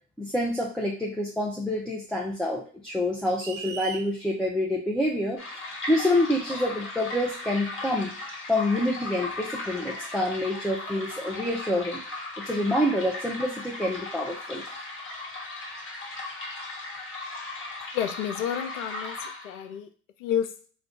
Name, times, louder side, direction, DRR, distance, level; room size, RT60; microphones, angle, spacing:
voice 1, 0.2-8.1 8.5-12.0 12.4-14.6, left 1 dB, ahead, -3 dB, 0.5 m, -27 dB
sound 1, 3.4-4.1, right 6 dB, 80° right, 0.5 m, -37 dB
sound 2, 5.4-19.7, left 2 dB, 30° left, 1.1 m, -37 dB
voice 2, 17.9-19.9 20.2-20.5, left 9 dB, 80° left, 7 dB, 0.5 m, -30 dB
2.3 x 2.2 x 3.7 m, 0.42 s
hypercardioid pair, 60°, 38 cm